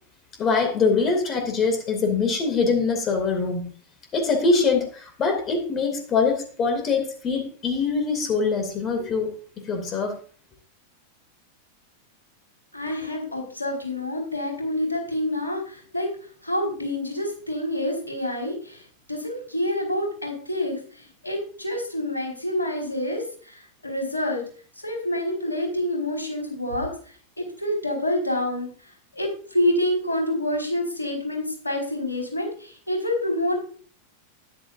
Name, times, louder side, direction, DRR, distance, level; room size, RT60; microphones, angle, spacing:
voice 1, 0.4-3.7 4.1-9.3 9.7-10.2, left 4 dB, 30° left, 5 dB, 2.7 m, -23 dB
voice 2, 12.7-16.1 16.4-24.4 24.8-26.9 27.4-28.7 29.1-33.6, left 1 dB, 80° left, 1 dB, 4.7 m, -27 dB
13.0 x 10.5 x 2.6 m, 0.42 s
figure-of-eight pair, 90°, 0 cm